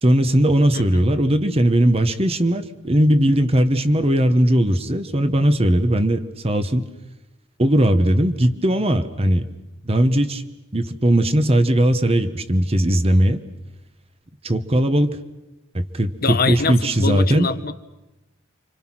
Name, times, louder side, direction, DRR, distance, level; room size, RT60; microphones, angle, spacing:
voice 1, 0.0-6.9 7.6-9.4 9.9-10.4 10.7-13.4 14.4-15.2 15.7-17.5, right 1 dB, 30° right, 1.1 m, -18 dB
voice 2, 0.7-1.1 16.2-17.7, left 4 dB, 45° left, 1.0 m, -24 dB
30.0 x 26.0 x 6.1 m
head